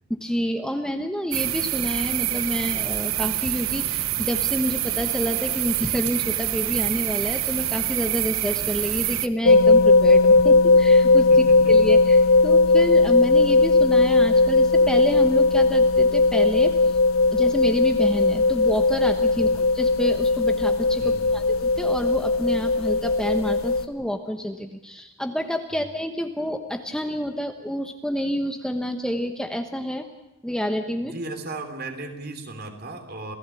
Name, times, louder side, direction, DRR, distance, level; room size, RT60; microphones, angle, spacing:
voice 1, 0.1-17.0 17.3-30.1 30.4-31.1, equal, 5° left, 5 dB, 1.1 m, -28 dB
sound 1, 1.3-9.3, right 13 dB, 80° right, 0.9 m, -26 dB
sound 2, 9.4-23.8, left 3 dB, 85° left, 1.4 m, -18 dB
voice 2, 11.3-11.9 19.3-19.6 21.0-21.3 31.0-33.3, right 2 dB, 45° right, 6 dB, 3.2 m, -36 dB
27.5 x 16.5 x 8.4 m, 0.95 s
head